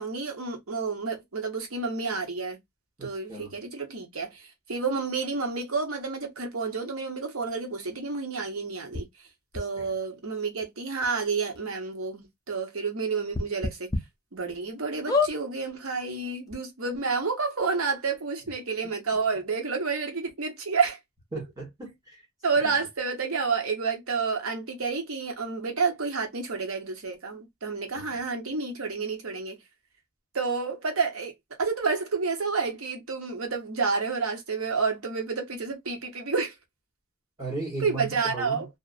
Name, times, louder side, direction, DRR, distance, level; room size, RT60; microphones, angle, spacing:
voice 1, 0.0-2.6 3.0-9.1 9.5-13.9 14.3-21.0 22.4-29.6 30.3-31.3 31.6-36.5 37.8-38.7, right 4 dB, 75° right, 0.9 m, -30 dB
voice 2, 3.0-3.5 9.8-9.9 21.3-22.2 28.0-28.1 37.4-38.7, right 3 dB, 15° right, 1.0 m, -36 dB
sound 1, 8.9-9.0 9.5-9.6 10.6-10.7 11.0-11.1 11.5-11.6 13.3-14.0 14.5-14.6 15.1-15.3 16.2-16.3 16.5-16.6, left 4 dB, 15° left, 0.5 m, -26 dB
2.5 x 2.1 x 2.4 m
head